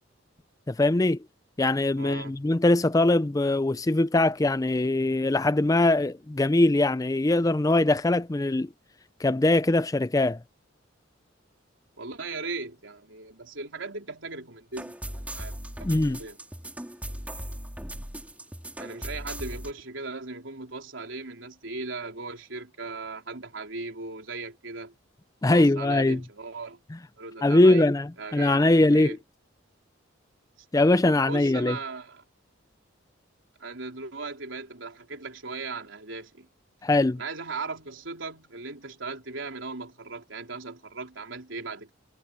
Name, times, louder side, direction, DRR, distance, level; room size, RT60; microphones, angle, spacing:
voice 1, 0.7-1.2 1.6-8.7 9.2-10.4 15.8-16.2 25.4-26.2 27.4-29.2 30.7-31.8 36.8-37.2, left 2 dB, 20° left, 0.4 m, -22 dB
voice 2, 2.0-2.4 12.0-15.9 16.2-16.4 18.8-24.9 25.5-26.8 27.2-27.9 28.2-29.2 31.1-32.2 33.6-36.5 37.2-41.9, right 3 dB, 80° right, 3.7 m, -38 dB
sound 1, 14.7-19.7, right 1 dB, 10° right, 3.1 m, -38 dB
head